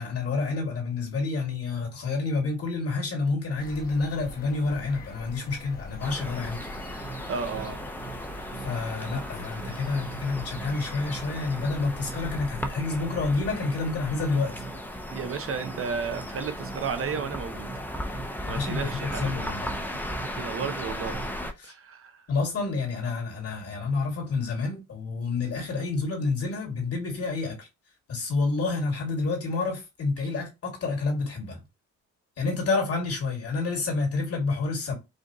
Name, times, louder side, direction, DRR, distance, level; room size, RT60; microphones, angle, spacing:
voice 1, 0.0-6.6 8.6-14.7 18.5-19.7 21.6-21.7 22.3-27.7 28.1-31.6 32.4-34.9, left 3 dB, 50° left, 2.2 m, -29 dB
sound 1, 3.6-12.4, left 2 dB, 30° left, 1.1 m, -44 dB
sound 2, 6.0-21.5, left 1 dB, 5° left, 0.6 m, -36 dB
sound 3, 7.0-21.4, right 6 dB, 85° right, 1.1 m, -44 dB
voice 2, 7.3-7.8 15.1-17.7 18.4-19.5 20.1-21.3 21.6-22.2, right 6 dB, 45° right, 0.6 m, -33 dB
4.9 x 2.5 x 2.9 m
cardioid pair, 90°, 30 cm